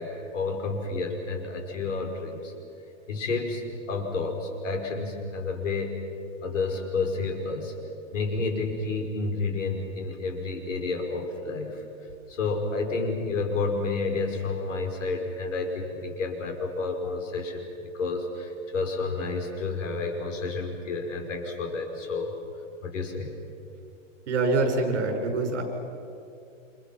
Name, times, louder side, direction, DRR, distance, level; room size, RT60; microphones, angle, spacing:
voice 1, 0.0-2.5 3.1-6.0 6.4-7.7 8.1-11.8 12.3-17.7 17.9-22.3 22.8-23.3, left 3 dB, 70° left, 3 dB, 5.5 m, -30 dB
voice 2, 24.3-25.6, right 3 dB, 60° right, 3 dB, 6.5 m, -25 dB
29.5 x 27.0 x 6.1 m, 2.6 s
hypercardioid pair, 175°, 39 cm